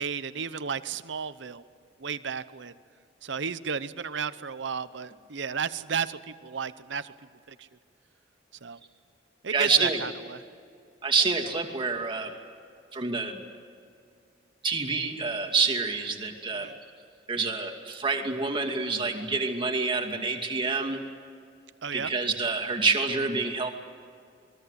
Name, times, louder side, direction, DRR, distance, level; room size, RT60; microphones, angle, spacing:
voice 1, 0.0-1.6 2.0-2.7 3.2-7.1 7.5-7.7 8.6-8.8 9.4-10.4 16.5-16.7 21.8-22.1, right 6 dB, 70° right, 14 dB, 0.8 m, -33 dB
voice 2, 9.5-10.0 11.0-12.3 12.9-13.4 14.6-16.7 17.3-21.0 21.9-23.7, right 4 dB, 25° right, 1 dB, 2.5 m, -27 dB
28.0 x 21.5 x 8.2 m, 2.3 s
head